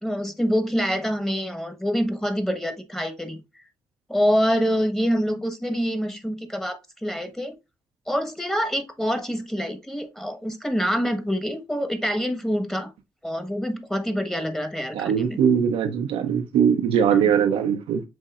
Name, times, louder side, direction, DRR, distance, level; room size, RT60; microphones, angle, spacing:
voice 1, 0.0-3.4 4.1-7.6 8.1-12.9 13.2-15.4 17.2-17.3, equal, 5° left, 1.2 m, -26 dB
voice 2, 14.9-18.0, right 8 dB, 80° right, 0.6 m, -21 dB
7.5 x 2.7 x 2.4 m
supercardioid pair, 50°, 10 cm